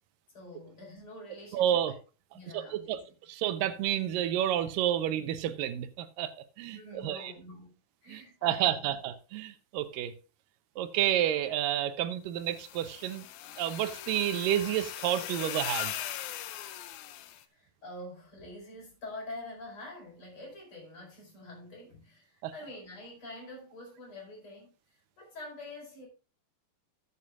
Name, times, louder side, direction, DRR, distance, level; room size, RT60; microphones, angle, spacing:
voice 1, 0.3-2.0 2.3-3.0 6.7-8.9 17.5-26.1, left 1 dB, 40° left, 5.3 m, -46 dB
voice 2, 1.5-1.9 2.5-3.0 3.3-7.3 8.1-10.1 10.8-13.3 13.6-15.9 22.4-22.5, right 11 dB, 85° right, 2.4 m, -30 dB
sound 1, 12.5-17.4, left 12 dB, 75° left, 2.0 m, -39 dB
14.0 x 8.5 x 2.4 m
omnidirectional pair, 3.9 m